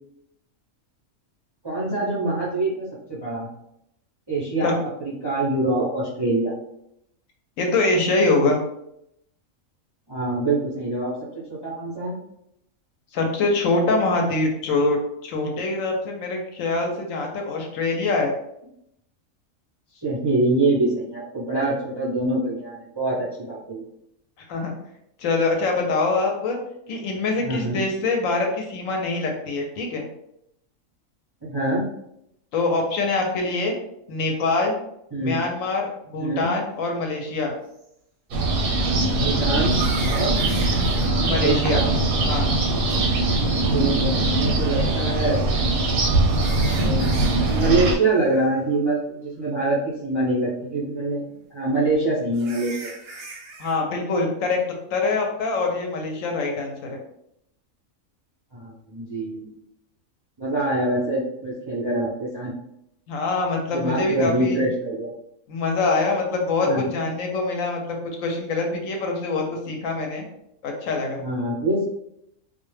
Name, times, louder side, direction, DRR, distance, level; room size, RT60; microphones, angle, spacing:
voice 1, 1.6-3.5 4.3-6.5 10.1-12.1 20.0-23.8 27.4-27.8 31.4-31.8 35.1-35.5 36.2-36.5 39.1-40.3 41.2-41.8 43.4-45.4 46.4-47.0 47.3-51.2 51.5-52.9 58.5-59.5 60.4-62.5 63.7-65.1 66.6-66.9 71.2-71.9, right 2 dB, 35° right, -8 dB, 0.4 m, -25 dB
voice 2, 7.6-8.6 13.1-18.3 24.5-24.7 25.2-26.6 26.9-30.0 32.5-33.7 34.1-34.8 35.2-37.5 41.2-41.8 42.2-42.5 53.6-54.6 54.9-57.0 63.1-64.6 65.5-70.2 70.6-71.2, left 3 dB, 75° left, 2 dB, 0.9 m, -24 dB
sound 1, 37.8-37.9 39.6-41.1 42.9-43.0 45.5-47.7 48.0-48.3 48.7-48.8 49.4-49.5 52.3-53.8, right 2 dB, 60° right, 0.7 m, -41 dB
sound 2, 38.3-48.0, right 2 dB, 85° right, 1.1 m, -21 dB
2.4 x 2.1 x 3.1 m, 0.77 s
omnidirectional pair, 1.4 m